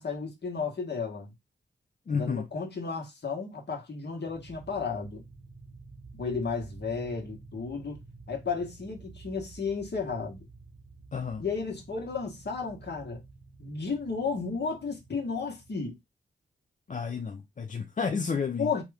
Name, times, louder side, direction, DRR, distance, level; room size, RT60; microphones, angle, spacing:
voice 1, 0.0-1.3 2.1-5.2 6.1-8.0 8.3-10.5 11.4-13.2 13.6-16.0 18.6-18.8, left 5 dB, 55° left, 1.2 m, -33 dB
voice 2, 2.1-2.5 11.1-11.4 16.9-18.7, left 5 dB, 40° left, 0.4 m, -31 dB
sound 1, 4.3-15.9, right 3 dB, 60° right, 0.8 m, -50 dB
2.9 x 2.3 x 3.3 m
cardioid pair, 70°, 21 cm